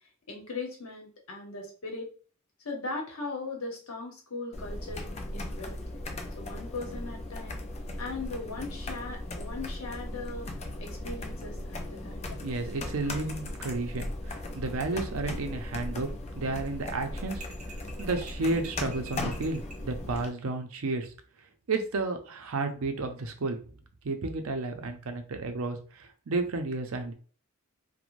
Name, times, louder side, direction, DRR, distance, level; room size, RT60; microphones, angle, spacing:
voice 1, 0.3-2.1 2.6-5.1 5.3-5.8 6.4-7.6 8.0-10.5 10.8-12.4, left 3 dB, 70° left, 1 dB, 0.9 m, -39 dB
sound 1, 4.5-20.3, left 1 dB, 30° left, 0.3 m, -37 dB
voice 2, 12.4-16.1 16.3-17.4 18.0-21.1 21.7-23.6 24.0-27.1, right 3 dB, 70° right, 6 dB, 0.5 m, -32 dB
sound 2, 17.4-19.9, right 2 dB, 35° right, 0.7 m, -48 dB
2.5 x 2.1 x 3.0 m, 0.40 s
head